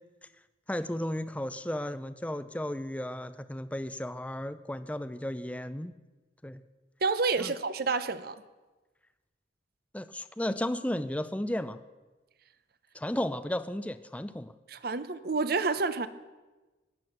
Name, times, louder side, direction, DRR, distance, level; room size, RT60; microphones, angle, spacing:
voice 1, 0.7-5.9 6.4-6.6 7.4-7.5 9.9-11.8 12.9-14.5, left 1 dB, 5° left, 0.5 m, -34 dB
voice 2, 7.0-8.4 14.7-16.1, right 4 dB, 55° right, 0.7 m, -29 dB
17.0 x 11.0 x 5.9 m
head